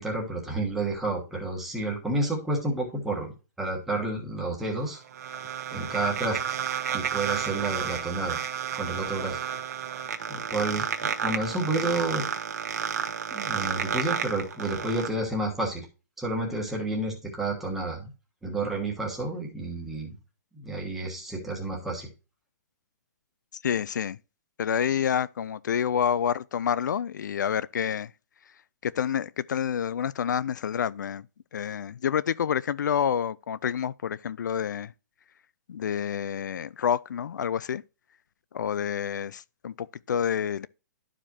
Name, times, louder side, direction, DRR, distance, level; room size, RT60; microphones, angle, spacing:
voice 1, 0.0-3.3 3.6-5.0 5.7-6.4 6.9-8.4 8.7-9.4 10.3-12.3 13.3-15.9 16.2-18.1 18.4-20.2 20.5-22.1, right 2 dB, 5° right, 1.3 m, -30 dB
sound 1, 4.6-15.1, right 8 dB, 60° right, 1.2 m, -31 dB
voice 2, 23.6-24.2 24.6-28.1 28.8-31.2 31.5-34.9 35.7-37.8 38.5-40.7, left 8 dB, 80° left, 0.4 m, -28 dB
11.5 x 4.9 x 2.9 m
hypercardioid pair, 175°, 10 cm